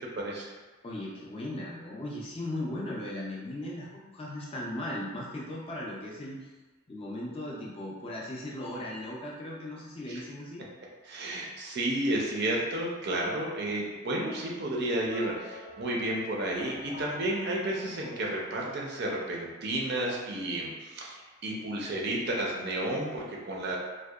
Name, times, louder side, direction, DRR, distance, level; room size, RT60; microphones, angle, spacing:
voice 1, 0.2-0.5 10.1-10.2 11.1-23.8, right 1 dB, 50° right, -2 dB, 0.4 m, -32 dB
voice 2, 0.8-6.4 6.9-10.6, left 1 dB, 25° left, -4 dB, 0.3 m, -37 dB
sound 1, 15.0-19.3, left 2 dB, 70° left, 0.6 m, -48 dB
2.6 x 2.1 x 2.3 m, 1.3 s
head